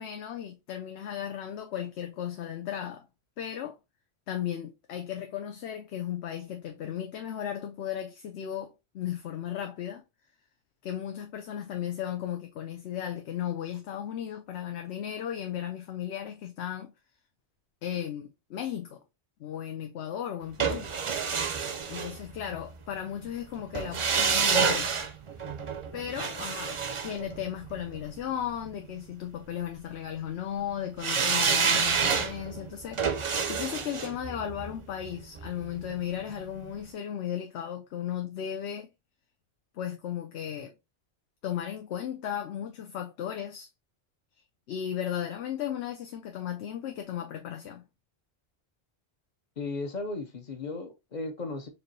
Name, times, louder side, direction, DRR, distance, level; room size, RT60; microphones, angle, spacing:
voice 1, 0.0-3.1 3.4-3.8 4.3-10.0 10.8-16.9 17.8-19.0 19.4-20.9 21.9-24.9 25.9-38.9 39.7-40.7 41.4-43.7 44.7-47.8, left 10 dB, 85° left, 0.9 m, -35 dB
sound 1, 20.6-22.7 23.7-28.0 31.0-36.0 36.3-36.4, right 6 dB, 40° right, 0.4 m, -29 dB
voice 2, 49.6-51.7, left 3 dB, 45° left, 0.8 m, -35 dB
4.6 x 2.8 x 2.6 m
omnidirectional pair, 1.1 m